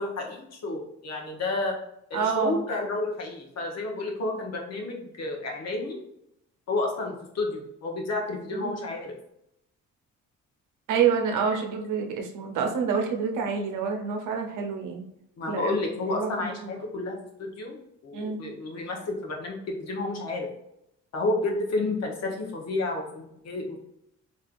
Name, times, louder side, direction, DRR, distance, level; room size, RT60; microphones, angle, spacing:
voice 1, 0.0-1.7 2.1-6.0 6.7-9.2 15.4-20.5 21.1-23.8, left 2 dB, 60° left, 0 dB, 1.1 m, -31 dB
voice 2, 2.1-2.6 8.5-8.8 10.9-15.0 15.5-15.7 16.1-16.7 18.1-18.4, right 6 dB, 90° right, 3 dB, 0.8 m, -28 dB
3.5 x 3.2 x 2.5 m, 0.79 s
cardioid pair, 90°, 30 cm